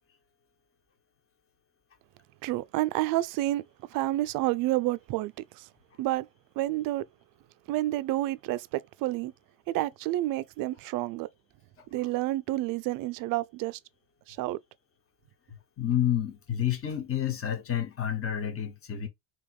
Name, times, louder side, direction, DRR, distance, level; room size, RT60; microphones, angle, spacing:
voice 1, 2.4-3.6 3.9-5.7 6.0-6.3 6.6-7.1 7.7-9.3 9.7-11.3 11.9-13.8 14.3-14.6, right 16 dB, 50° right, 0.5 m, -29 dB
voice 2, 15.8-19.1, left 10 dB, 30° left, 1.3 m, -29 dB
3.5 x 3.0 x 4.7 m
supercardioid pair, 120°, 44 cm